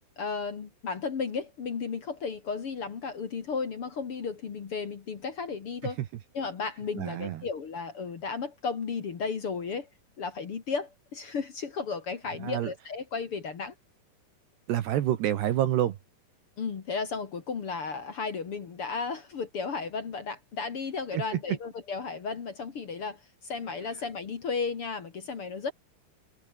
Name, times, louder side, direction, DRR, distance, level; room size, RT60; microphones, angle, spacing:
voice 1, 0.2-6.0 6.3-9.9 10.2-13.7 16.6-25.7, left 5 dB, 50° left, 1.7 m, -34 dB
voice 2, 7.0-7.5 12.4-12.7 14.7-16.0 21.1-21.6, right 12 dB, 65° right, 3.2 m, -28 dB
omnidirectional pair, 5.6 m